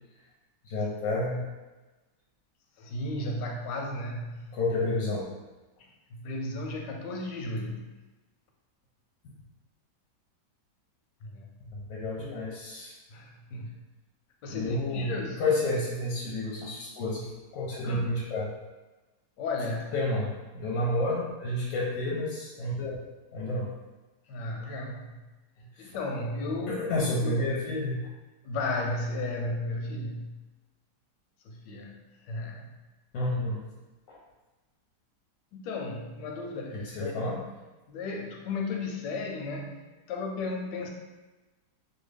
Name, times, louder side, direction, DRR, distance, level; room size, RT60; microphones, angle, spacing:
voice 1, 0.6-1.4 4.5-5.3 11.7-13.0 14.5-18.5 19.9-23.0 23.3-23.7 25.7-25.9 26.8-28.1 33.1-33.7 34.1-34.2 36.7-37.4, left 2 dB, 65° left, -4 dB, 0.9 m, -30 dB
voice 2, 2.8-4.6 5.8-7.9 11.2-11.5 13.1-13.7 14.4-15.4 17.8-18.1 19.4-19.9 24.3-25.1 25.8-26.9 27.2-27.3 28.4-30.4 31.4-32.0 32.2-32.8 35.5-37.1 37.9-40.9, left 2 dB, 85° left, 1 dB, 1.2 m, -34 dB
3.0 x 2.2 x 3.3 m, 1.1 s
omnidirectional pair, 1.9 m